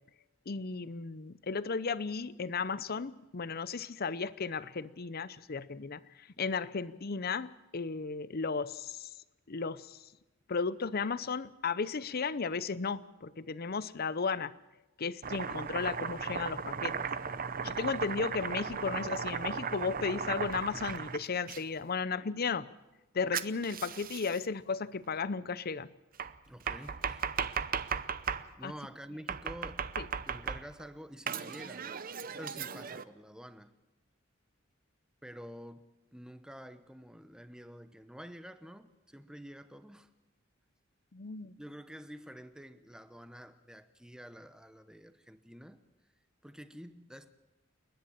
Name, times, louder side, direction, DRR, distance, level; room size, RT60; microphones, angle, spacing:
voice 1, 0.5-6.0 6.4-9.1 9.5-10.0 10.5-14.5 15.0-16.9 17.6-22.7 23.1-25.9 28.6-28.7 30.0-30.1 41.1-41.6, left 5 dB, 50° left, 0.7 m, -34 dB
Domestic sounds home sounds, 15.2-21.6 23.3-24.5 26.2-28.5 29.3-30.8 31.3-33.0, right 6 dB, 45° right, 0.7 m, -36 dB
voice 2, 26.5-27.3 28.5-29.9 30.2-31.9 32.4-33.8 35.2-40.1 41.4-45.8 46.4-47.3, equal, 5° right, 0.9 m, -49 dB
29.5 x 10.5 x 8.8 m
head